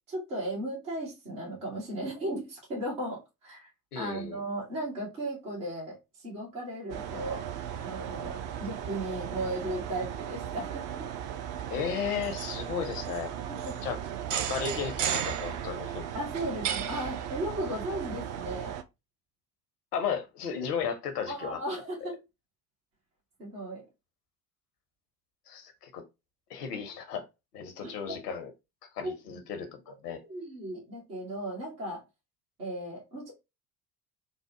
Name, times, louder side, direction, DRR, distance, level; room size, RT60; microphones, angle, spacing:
voice 1, 0.1-3.7 3.9-7.5 7.8-11.1 13.5-13.8 16.1-18.8 21.3-22.2 23.4-23.8 27.8-28.2 29.0-29.4 29.9-32.0 32.6-33.3, right 1 dB, 75° right, 1.5 m, -36 dB
voice 2, 3.9-4.4 11.7-13.3 13.8-14.0 14.3-16.0 19.9-21.6 25.5-26.0 26.5-27.2 27.5-28.5 28.9-30.2, left 7 dB, 80° left, 0.7 m, -34 dB
sound 1, 6.9-18.8, right 9 dB, 40° right, 0.4 m, -35 dB
3.5 x 2.0 x 2.7 m
figure-of-eight pair, 50°, 46 cm